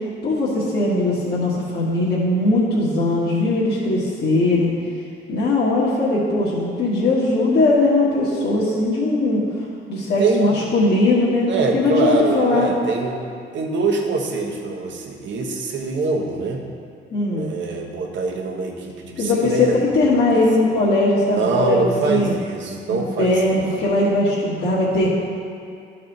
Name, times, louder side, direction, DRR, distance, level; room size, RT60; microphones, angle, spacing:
voice 1, 0.2-4.7 5.3-9.4 9.9-12.7 17.1-17.5 19.2-22.3 22.9-25.1, left 2 dB, 55° left, -8 dB, 1.6 m, -19 dB
voice 2, 10.2-10.6 11.5-13.2 13.5-16.6 17.3-19.8 20.3-20.7 21.3-23.4 25.0-25.1, right 3 dB, 65° right, 1 dB, 1.1 m, -24 dB
11.5 x 4.3 x 4.0 m, 2.5 s
cardioid pair, 90°, 20 cm